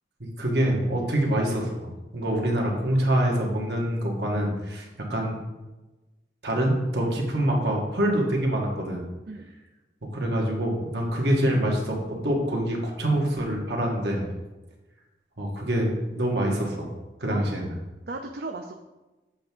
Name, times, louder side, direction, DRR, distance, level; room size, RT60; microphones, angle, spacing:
voice 1, 0.2-5.4 6.4-9.0 10.0-14.3 15.4-16.9 17.2-17.6, right 1 dB, 80° right, 0 dB, 1.6 m, -25 dB
voice 2, 17.3-17.6 18.0-18.8, right 2 dB, 60° right, 3 dB, 0.5 m, -36 dB
7.6 x 3.5 x 6.1 m, 1.1 s
head